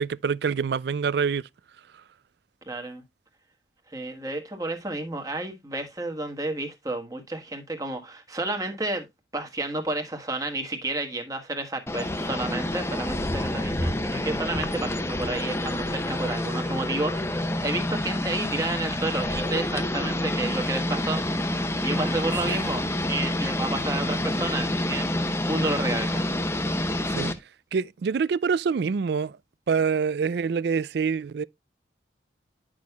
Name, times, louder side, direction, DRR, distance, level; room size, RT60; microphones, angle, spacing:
voice 1, 0.0-1.4 22.5-22.6 27.1-27.3 27.7-29.4 29.7-31.4, right 6 dB, 60° right, 0.3 m, -26 dB
voice 2, 2.7-3.0 3.9-9.0 9.3-21.2 21.8-22.8 23.1-25.2 25.5-26.3, right 2 dB, 20° right, 1.3 m, -31 dB
sound 1, 11.9-27.3, left 1 dB, 15° left, 0.8 m, -28 dB
10.5 x 6.3 x 2.3 m
head